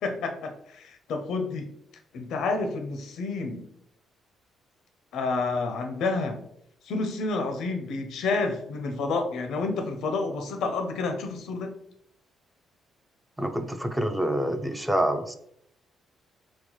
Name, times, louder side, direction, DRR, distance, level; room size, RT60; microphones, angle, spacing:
voice 1, 0.0-1.7 2.1-3.6 5.1-6.4 6.8-11.8, left 3 dB, 75° left, 6 dB, 0.5 m, -29 dB
voice 2, 13.4-15.4, right 1 dB, 5° right, 7 dB, 0.3 m, -27 dB
4.0 x 2.1 x 3.0 m, 0.72 s
cardioid pair, 90°, 0 cm